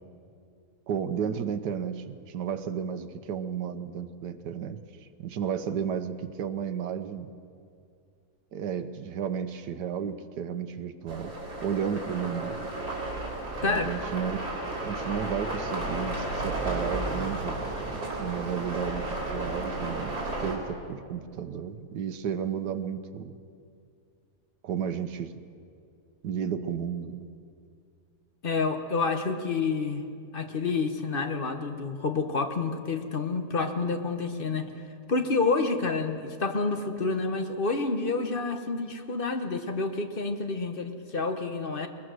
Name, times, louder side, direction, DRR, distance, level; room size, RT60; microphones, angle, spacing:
voice 1, 0.9-4.8 5.2-7.3 8.5-11.3 11.6-12.6 13.6-14.4 14.8-20.1 20.4-23.4 24.6-25.3 26.2-27.3, right 7 dB, 90° right, 9 dB, 1.5 m, -33 dB
sound 1, 11.1-20.5, right 2 dB, 65° right, 4.1 m, -33 dB
voice 2, 28.4-30.0 30.3-34.7 35.1-41.9, left 4 dB, 35° left, 7 dB, 1.2 m, -28 dB
21.5 x 20.5 x 6.4 m, 2.3 s
omnidirectional pair, 1.7 m